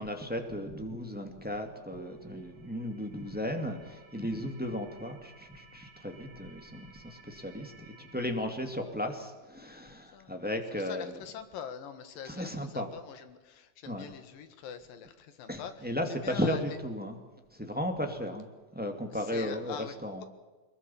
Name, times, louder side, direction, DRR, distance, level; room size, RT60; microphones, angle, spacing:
voice 1, 0.0-11.1 12.2-12.9 13.9-14.1 15.5-17.2 17.5-20.2, left 1 dB, 5° right, 4 dB, 1.4 m, -35 dB
sound 1, 1.9-8.3, right 6 dB, 75° right, 5.1 m, -55 dB
voice 2, 8.3-8.7 9.9-10.5 10.7-15.9 16.2-16.6 19.1-20.0, left 8 dB, 75° left, 9 dB, 3.3 m, -44 dB
22.5 x 21.5 x 7.1 m, 1.2 s
omnidirectional pair, 4.2 m